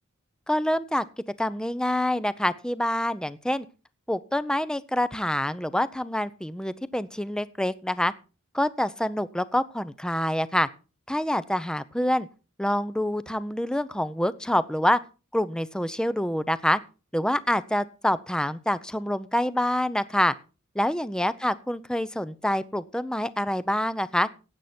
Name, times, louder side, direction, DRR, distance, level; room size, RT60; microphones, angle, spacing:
voice 1, 0.5-1.0 1.4-3.7 4.1-8.1 8.5-10.7 11.1-12.3 12.6-15.0 15.3-16.8 17.1-20.3 20.8-24.3, left 1 dB, 5° left, 15 dB, 0.6 m, -26 dB
16.0 x 9.5 x 4.3 m, 0.33 s
head